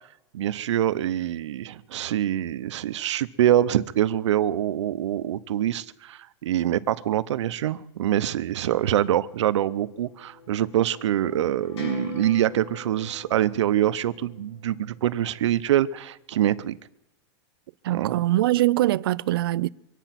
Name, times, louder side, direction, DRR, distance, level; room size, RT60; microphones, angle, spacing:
voice 1, 0.3-16.8 17.9-18.2, right 12 dB, 90° right, 0.8 m, -25 dB
sound 1, 9.3-15.7, left 2 dB, 70° left, 7.9 m, -42 dB
voice 2, 17.8-19.7, right 15 dB, 55° right, 0.5 m, -22 dB
24.5 x 9.1 x 5.9 m
supercardioid pair, 180°, 15 cm